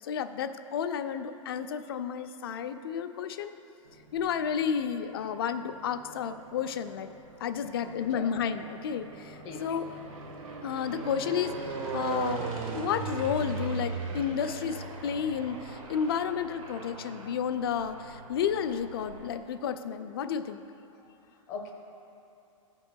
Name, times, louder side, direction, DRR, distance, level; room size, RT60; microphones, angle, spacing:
voice 1, 0.0-3.5 4.1-7.1 7.4-9.9 10.6-12.4 12.7-20.6, left 7 dB, 45° left, 8 dB, 0.4 m, -31 dB
sound 1, 3.9-4.6 5.4-19.4, right 3 dB, 85° right, 1.3 m, -39 dB
voice 2, 7.8-8.3 9.4-9.6 20.9-21.7, left 5 dB, 20° left, 0 dB, 0.8 m, -42 dB
16.5 x 5.8 x 2.2 m, 2.9 s
supercardioid pair, 180°, 17 cm